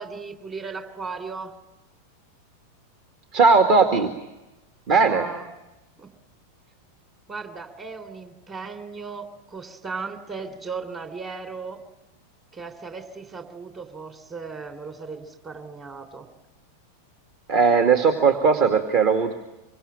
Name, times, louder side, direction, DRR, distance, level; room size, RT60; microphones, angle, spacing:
voice 1, 0.0-1.6 4.9-5.5 6.0-6.1 7.3-11.8 12.5-16.3, right 4 dB, 20° right, 8 dB, 3.5 m, -36 dB
voice 2, 3.3-4.1 4.9-5.2 17.5-19.3, right 5 dB, 40° right, 6 dB, 2.2 m, -18 dB
26.0 x 24.5 x 8.9 m, 1.0 s
figure-of-eight pair, 90°, 0 cm